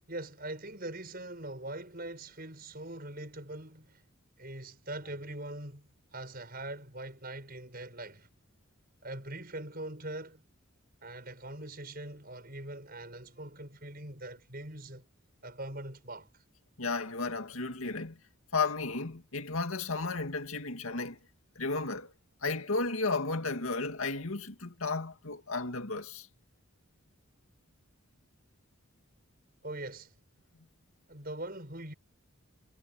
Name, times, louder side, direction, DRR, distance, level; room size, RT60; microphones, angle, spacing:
voice 1, 0.1-4.0 4.4-8.3 9.0-10.4 11.0-15.1 15.4-16.3 29.6-30.1 31.1-31.9, right 1 dB, 45° right, 6.9 m, -42 dB
voice 2, 16.8-18.2 18.5-21.2 21.6-22.1 22.4-26.3, left 3 dB, 75° left, 2.1 m, -33 dB
head